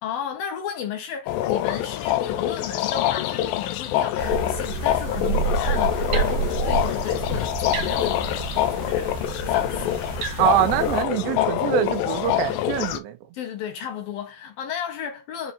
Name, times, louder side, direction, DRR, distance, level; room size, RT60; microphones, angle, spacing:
voice 1, 0.0-10.2 13.3-15.5, left 8 dB, 65° left, 2.8 m, -34 dB
sound 1, 1.3-13.0, left 13 dB, 85° left, 3.1 m, -25 dB
sound 2, 4.2-11.0, right 6 dB, 60° right, 2.1 m, -29 dB
voice 2, 10.4-13.2, right 12 dB, 85° right, 3.3 m, -24 dB
9.5 x 4.1 x 2.8 m
omnidirectional pair, 4.9 m